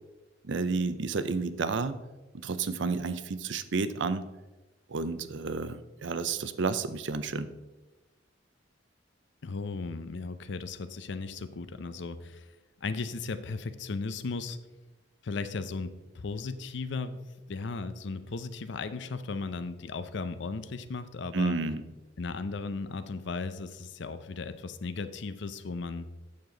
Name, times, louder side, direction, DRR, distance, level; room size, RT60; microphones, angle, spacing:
voice 1, 0.4-2.0 2.4-4.2 4.9-7.5 21.3-21.8, right 4 dB, 70° right, 13 dB, 0.6 m, -31 dB
voice 2, 9.4-12.5 12.8-14.6 15.2-17.2 17.5-21.6 22.2-26.1, left 4 dB, 65° left, 11 dB, 0.6 m, -36 dB
8.5 x 6.8 x 3.8 m, 1.1 s
head